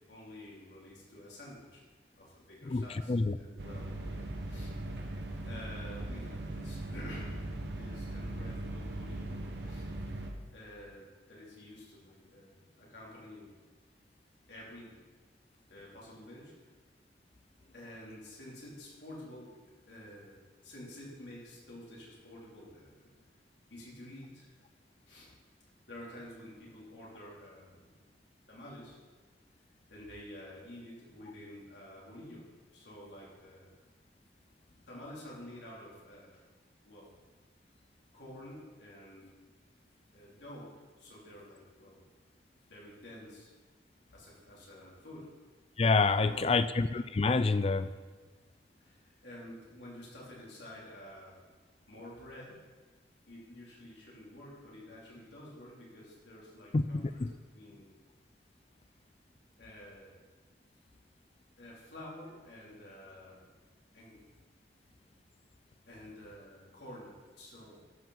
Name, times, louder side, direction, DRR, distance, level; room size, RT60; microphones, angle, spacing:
voice 1, 0.1-1.8 2.2-4.7 5.4-9.9 10.5-13.5 14.5-15.0 15.7-16.7 17.7-23.1 23.7-24.5 25.0-25.3 25.9-28.0 28.5-29.0 29.9-33.7 34.7-36.4 36.8-37.1 38.1-39.4 40.1-42.1 42.7-43.5 44.1-45.4 46.1-46.7 48.8-49.0 49.2-51.4 51.9-52.6 53.2-57.3 57.5-57.9 59.6-60.2 61.6-63.5 63.9-64.2 65.9-67.8, left 1 dB, 80° left, -5 dB, 3.2 m, -50 dB
voice 2, 2.7-3.4 45.8-47.9 56.7-57.3, left 3 dB, 35° left, 12 dB, 0.4 m, -28 dB
sound 1, 3.6-10.3, right 1 dB, 80° right, 1.2 m, -39 dB
12.0 x 5.9 x 5.6 m, 1.4 s
head